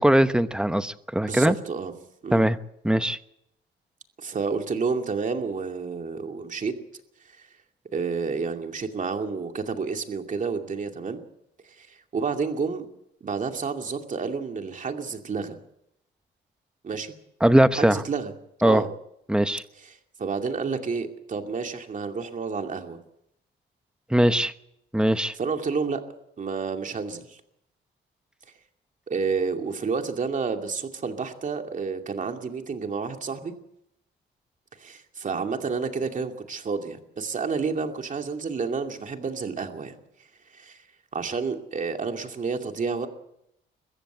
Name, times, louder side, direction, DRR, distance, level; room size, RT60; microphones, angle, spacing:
voice 1, 0.0-1.5 2.3-2.6 2.8-3.2 17.4-18.0 18.6-18.8 19.3-19.6 24.1-24.5 24.9-25.3, right 1 dB, 5° right, 1.0 m, -20 dB
voice 2, 1.2-1.9 2.2-2.5 4.2-6.7 7.9-11.2 11.8-12.9 13.2-15.6 16.8-17.1 17.8-18.3 18.6-18.9 19.8-23.0 25.3-26.0 26.4-27.4 29.1-33.5 34.8-39.9 40.5-40.8 41.1-43.1, right 5 dB, 40° right, 2.5 m, -30 dB
22.0 x 15.0 x 8.1 m
cardioid pair, 90°, 20 cm